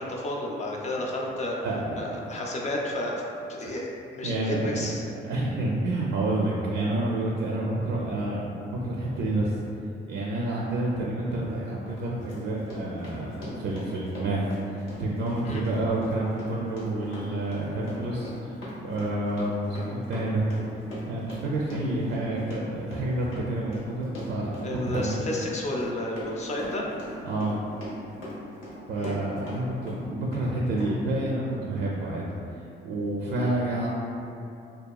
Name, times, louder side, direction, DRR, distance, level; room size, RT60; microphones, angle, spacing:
voice 1, 0.0-1.7 2.0-3.2 3.5-5.0 15.4-15.6 24.6-26.9 28.9-29.2, left 1 dB, 35° left, -2 dB, 0.4 m, -32 dB
voice 2, 1.6-2.4 3.7-3.8 4.2-4.9 5.3-9.6 10.1-20.5 21.1-25.3 27.2-27.6 28.9-32.3 32.8-33.9, right 1 dB, 65° right, -4 dB, 0.4 m, -29 dB
Run, 11.3-11.4 11.9-29.6 29.9-30.5 30.8-30.9, equal, 90° left, 0.8 m, -40 dB
2.7 x 2.3 x 2.3 m, 2.6 s
cardioid pair, 90°, 20 cm